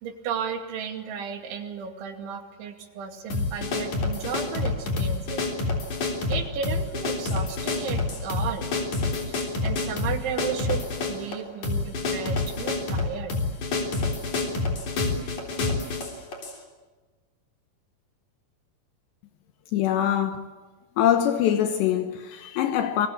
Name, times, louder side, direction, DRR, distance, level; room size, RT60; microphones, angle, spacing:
voice 1, 0.0-5.4 6.3-8.7 9.3-13.3, right 7 dB, 90° right, 4.8 m, -34 dB
sound 1, 3.3-16.6, left 3 dB, 45° left, 4.6 m, -28 dB
voice 2, 19.7-20.5 21.0-23.1, left 10 dB, 75° left, 3.2 m, -23 dB
28.0 x 21.5 x 8.5 m
omnidirectional pair, 5.3 m